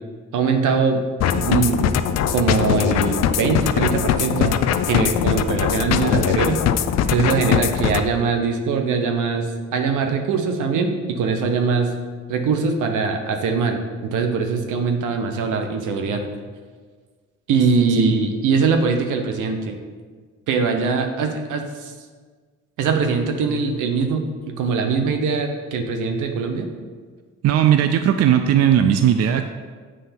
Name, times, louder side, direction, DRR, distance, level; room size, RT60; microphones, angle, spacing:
voice 1, 0.3-1.0 1.3-2.0 2.3-6.6 7.1-11.9 12.3-16.2 17.5-19.8 20.5-21.9 22.8-26.7, right 5 dB, 85° right, 4 dB, 0.9 m, -22 dB
sound 1, 1.2-8.0, left 9 dB, 60° left, 0.4 m, -21 dB
voice 2, 27.4-29.4, right 9 dB, 55° right, 7 dB, 0.4 m, -17 dB
7.6 x 3.3 x 5.7 m, 1.5 s
cardioid pair, 90°, 30 cm